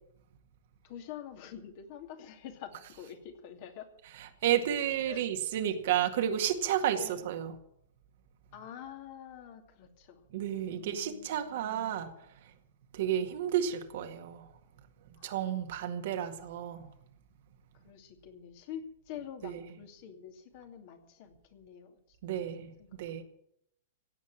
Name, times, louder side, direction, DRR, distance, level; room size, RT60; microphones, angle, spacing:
voice 1, 0.8-3.9 5.0-5.2 6.9-7.3 8.5-10.2 10.7-11.7 15.2-15.6 17.8-22.5 22.8-23.0, left 9 dB, 50° left, 2.6 m, -47 dB
voice 2, 4.4-7.5 10.3-12.1 12.9-14.5 15.2-16.9 19.4-19.5 22.2-23.2, right 10 dB, 55° right, 1.9 m, -31 dB
16.5 x 8.4 x 8.9 m
figure-of-eight pair, 110°, 0 cm